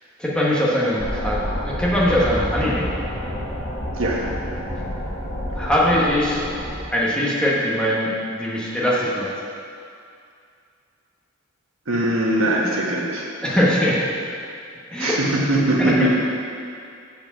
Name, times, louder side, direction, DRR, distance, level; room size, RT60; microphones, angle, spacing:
voice 1, 0.2-2.9 5.5-6.4 6.9-9.3 13.4-14.0 14.9-15.2 15.8-15.9, equal, 5° left, -7 dB, 1.2 m, -21 dB
sound 1, 1.0-6.8, equal, 35° left, 1.6 m, -29 dB
voice 2, 11.9-13.3 15.0-16.1, right 1 dB, 85° right, -2 dB, 1.2 m, -21 dB
7.7 x 5.0 x 5.9 m, 2.4 s
head